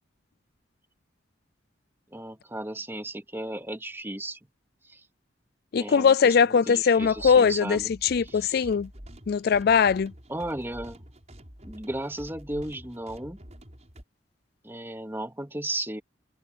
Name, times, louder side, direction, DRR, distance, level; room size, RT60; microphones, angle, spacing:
voice 1, 2.1-4.4 4.8-5.0 5.8-7.9 8.2-8.7 10.3-11.1 11.6-13.4 14.6-16.0, right 1 dB, 15° right, 2.8 m, -35 dB
voice 2, 5.7-8.9 9.3-10.1, left 6 dB, 55° left, 0.4 m, -21 dB
sound 1, 6.9-14.0, equal, 40° right, 7.7 m, -47 dB
head